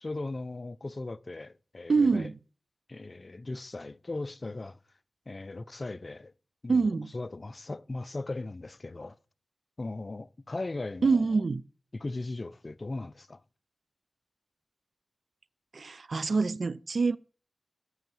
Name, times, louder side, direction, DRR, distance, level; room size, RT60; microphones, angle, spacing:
voice 1, 0.0-2.3 2.9-4.8 5.3-6.3 6.6-9.2 9.8-11.3 11.9-13.4, left 2 dB, 50° left, 0.4 m, -38 dB
voice 2, 1.9-2.4 6.7-7.1 11.0-11.6 15.7-17.2, right 4 dB, 75° right, 0.4 m, -26 dB
8.1 x 5.6 x 7.4 m
wide cardioid pair, 55°, 0 cm